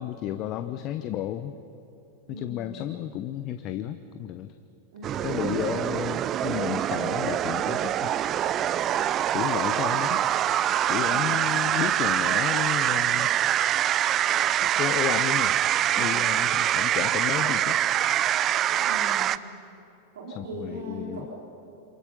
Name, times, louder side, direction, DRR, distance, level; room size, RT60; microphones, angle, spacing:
voice 1, 0.0-1.6 2.3-4.5 5.2-8.1 9.3-10.4 10.9-13.3 13.7-13.9 14.6-15.6 16.0-17.8 20.3-21.3, left 12 dB, 35° left, 10 dB, 0.8 m, -32 dB
voice 2, 2.3-2.9 4.9-5.4 11.0-11.4 15.9-16.2 18.8-19.4 20.1-21.3, equal, 60° right, -3 dB, 3.9 m, -40 dB
sound 1, 5.0-19.4, right 11 dB, 30° right, 0.5 m, -25 dB
28.0 x 27.5 x 5.5 m, 2.7 s
figure-of-eight pair, 90°, 0 cm